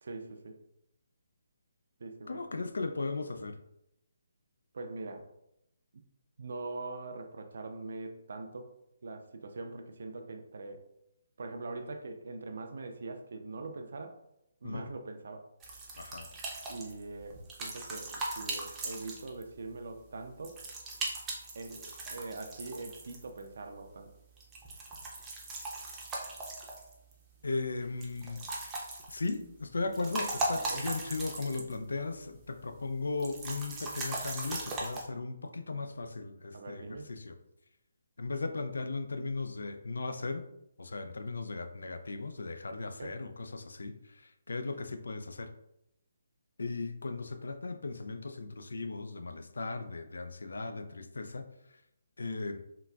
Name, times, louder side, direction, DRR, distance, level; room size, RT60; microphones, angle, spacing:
voice 1, 0.0-0.6 2.0-2.4 4.7-5.3 5.9-6.0 6.4-8.7 9.0-10.9 11.4-14.2 14.6-15.5 16.7-20.6 21.5-24.1 30.7-30.9 36.5-37.1 42.8-43.1, right 3 dB, 65° right, 6 dB, 0.4 m, -42 dB
voice 2, 2.3-3.6 14.6-14.9 16.0-16.3 27.4-28.4 29.1-37.4 38.2-40.4 40.8-45.5 46.6-51.5 52.2-52.6, left 3 dB, 75° left, 8 dB, 0.3 m, -37 dB
sound 1, 15.6-19.6 20.4-23.5 24.4-27.1 28.0-29.4 29.8-31.8 32.1-32.2 33.2-35.0, right 2 dB, 15° right, 0.6 m, -39 dB
3.7 x 2.3 x 2.3 m, 0.82 s
figure-of-eight pair, 150°, 0 cm